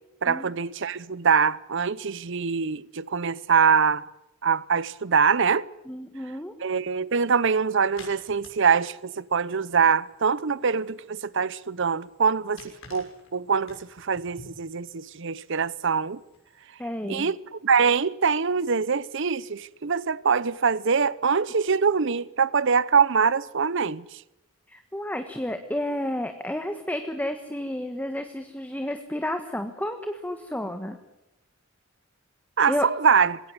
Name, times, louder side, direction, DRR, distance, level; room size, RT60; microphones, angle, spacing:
voice 1, 0.2-4.0 4.4-5.7 6.6-16.2 17.1-24.0 32.6-33.4, right 6 dB, 60° right, 0.8 m, -24 dB
voice 2, 5.8-6.5 16.8-17.3 24.7-31.0 32.7-32.9, left 1 dB, 10° left, 1.4 m, -31 dB
sound 1, 7.1-16.6, left 3 dB, 65° left, 6.4 m, -53 dB
21.5 x 17.5 x 9.6 m
head